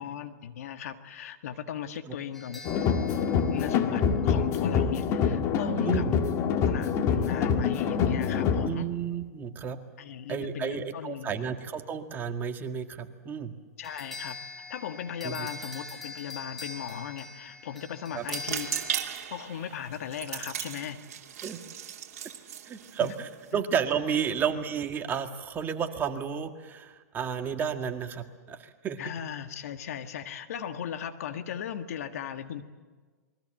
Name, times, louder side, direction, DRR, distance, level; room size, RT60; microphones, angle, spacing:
voice 1, 0.0-2.6 3.5-6.1 6.7-8.9 10.0-11.5 13.8-14.4 14.7-18.7 19.3-21.0 23.0-23.1 23.5-23.6 29.0-32.6, left 8 dB, 65° left, 8 dB, 1.7 m, -37 dB
sound 1, 2.3-4.6 13.8-19.1, left 3 dB, ahead, 2.2 m, -43 dB
sound 2, 2.6-8.7, left 6 dB, 35° left, 1.8 m, -26 dB
voice 2, 5.8-6.1 8.6-9.8 10.3-13.5 15.2-15.5 18.1-18.3 21.4-21.6 22.7-29.0, right 7 dB, 20° right, 6 dB, 1.8 m, -32 dB
sound 3, 18.2-23.5, right 10 dB, 60° right, 2.6 m, -37 dB
28.0 x 22.0 x 7.8 m, 1.4 s
hypercardioid pair, 125°, 9 cm